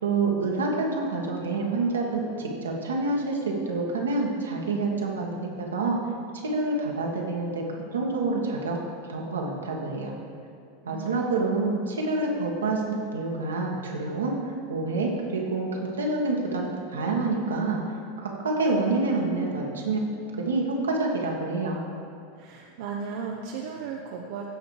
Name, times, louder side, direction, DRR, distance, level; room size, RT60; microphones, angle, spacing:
voice 1, 0.0-6.0 6.4-7.6 7.9-10.1 10.8-17.8 18.2-20.0 20.4-21.8, right 3 dB, 80° right, -1 dB, 1.6 m, -27 dB
voice 2, 10.8-11.5 22.3-24.5, right 6 dB, 60° right, 0 dB, 0.7 m, -36 dB
15.5 x 5.1 x 4.8 m, 2.5 s
hypercardioid pair, 90°, 0 cm